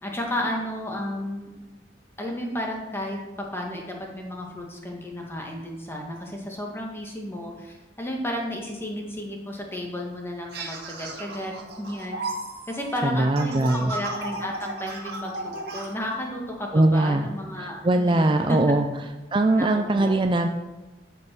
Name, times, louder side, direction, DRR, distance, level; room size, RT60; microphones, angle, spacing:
voice 1, 0.0-1.5 2.2-3.2 3.5-11.5 11.8-12.2 12.7-18.6 19.6-20.2, left 1 dB, 15° left, 0 dB, 1.8 m, -33 dB
sound 1, 10.5-15.9, right 2 dB, 60° right, 2.1 m, -35 dB
voice 2, 13.0-13.9 16.7-17.2 17.6-18.8 19.3-20.5, right 2 dB, 25° right, 6 dB, 0.5 m, -21 dB
14.0 x 5.5 x 6.1 m, 1.1 s
head